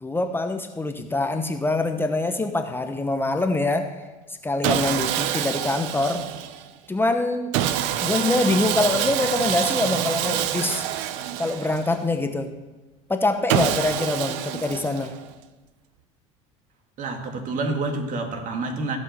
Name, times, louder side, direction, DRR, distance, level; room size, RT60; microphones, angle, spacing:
voice 1, 0.0-3.9 4.4-6.2 6.9-7.6 8.0-10.8 11.4-12.5 13.1-15.1, left 2 dB, 15° left, 6 dB, 1.0 m, -24 dB
Sawing, 4.6-6.7 7.5-12.1 13.5-15.3, right 11 dB, 75° right, 0.7 m, -26 dB
voice 2, 17.0-19.0, right 3 dB, 50° right, 5 dB, 2.0 m, -28 dB
16.0 x 5.4 x 6.8 m, 1.1 s
hypercardioid pair, 85°, 16 cm